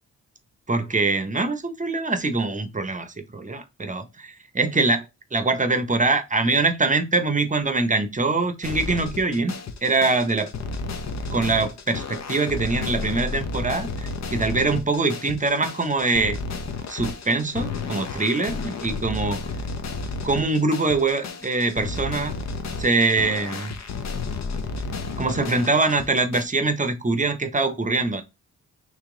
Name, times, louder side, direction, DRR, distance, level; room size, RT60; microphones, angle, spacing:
voice 1, 0.7-5.0 5.3-9.5 9.8-10.5 11.3-16.4 16.9-19.4 20.2-22.3 22.8-23.8 25.2-28.2, right 3 dB, 20° right, 0.8 m, -23 dB
sound 1, 8.6-26.4, left 4 dB, 50° left, 0.8 m, -32 dB
3.0 x 2.9 x 3.7 m
supercardioid pair, 50°, 35 cm